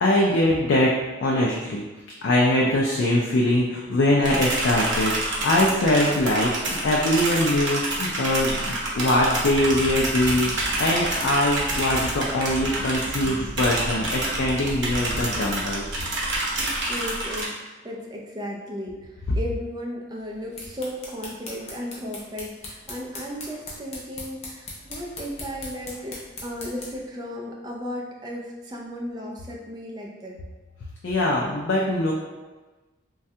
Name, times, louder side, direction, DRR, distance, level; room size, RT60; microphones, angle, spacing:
voice 1, 0.0-0.9 1.2-1.8 2.2-10.5 10.8-15.8 19.3-19.4 31.0-32.1, left 1 dB, 80° left, -3 dB, 0.4 m, -22 dB
sound 1, 4.2-17.5, right 1 dB, 75° right, 0.7 m, -28 dB
Wind, 9.5-16.3 16.7-17.1, equal, 15° left, 1.0 m, -37 dB
voice 2, 16.5-19.0 19.4-30.4, equal, 20° right, -2 dB, 0.4 m, -35 dB
sound 2, 20.3-27.1, left 2 dB, 30° left, 0.5 m, -40 dB
3.2 x 2.3 x 2.7 m, 1.2 s
head